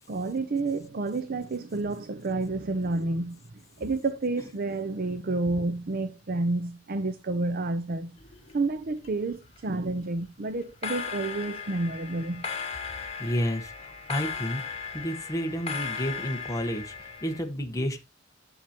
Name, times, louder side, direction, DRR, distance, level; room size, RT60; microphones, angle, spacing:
voice 1, 0.1-3.4 3.8-8.2 8.5-12.4, right 2 dB, 50° right, 0.6 m, -30 dB
sound 1, 8.2-9.1 9.3-9.8 10.6-17.4, left 5 dB, 35° left, 2.9 m, -37 dB
voice 2, 13.2-14.6 14.9-18.0, equal, 20° left, 1.1 m, -31 dB
10.5 x 7.2 x 2.9 m
head